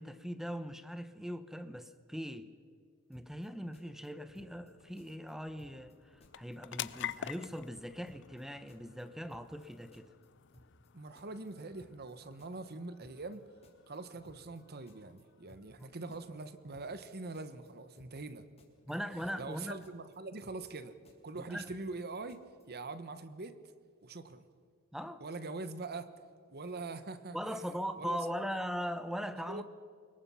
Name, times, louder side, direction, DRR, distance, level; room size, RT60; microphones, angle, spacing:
voice 1, 0.0-2.5 3.1-10.1 15.8-15.9 18.9-19.8 21.5-21.7 24.9-25.2 27.3-29.6, equal, ahead, 11 dB, 1.0 m, -40 dB
sound 1, 3.1-3.5 3.7-4.7 5.0-5.3 5.6-5.9 6.2-7.2 7.4-7.8 8.1-8.4 8.7-9.7 9.9-10.3 10.5-10.9 11.2-12.1 12.4-12.7 13.0-13.4 13.6-14.6 14.9-15.2 15.5-15.8 16.1-17.1 17.3-17.7 18.0-18.3 18.6-19.6 19.8-20.2 20.4-20.8 21.0-22.0 22.3-22.6, left 1 dB, 30° left, 3.4 m, -62 dB
sound 2, 3.5-18.2, left 11 dB, 55° left, 0.6 m, -50 dB
voice 2, 10.9-13.4 13.9-18.5 18.9-19.0 19.4-20.9 21.2-23.5 24.0-24.4 25.2-26.1 26.5-27.4 28.0-28.5 29.5-29.6, right 3 dB, 45° right, 12 dB, 1.2 m, -43 dB
25.0 x 21.5 x 5.7 m, 2.1 s
head